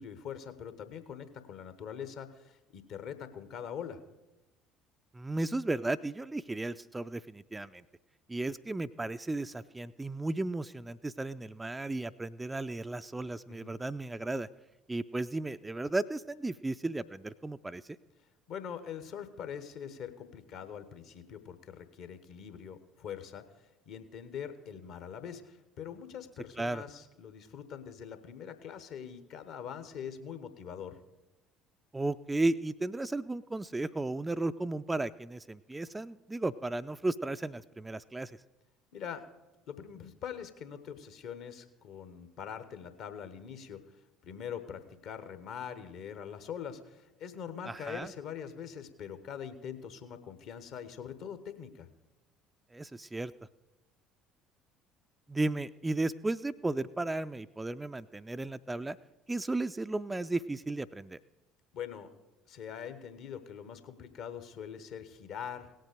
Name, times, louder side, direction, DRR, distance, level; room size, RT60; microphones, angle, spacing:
voice 1, 0.0-4.0 13.5-13.8 18.5-23.4 23.9-31.0 38.9-39.2 39.7-43.8 44.2-51.9 61.7-62.1 62.5-65.8, left 8 dB, 55° left, 11 dB, 1.0 m, -43 dB
voice 2, 5.1-7.8 8.3-14.5 14.9-18.0 26.6-26.8 31.9-38.4 47.7-48.1 52.7-53.3 55.3-59.0 59.3-61.2, right 2 dB, 15° right, 12 dB, 0.4 m, -34 dB
17.5 x 7.9 x 5.1 m, 1.0 s
figure-of-eight pair, 55°, 0 cm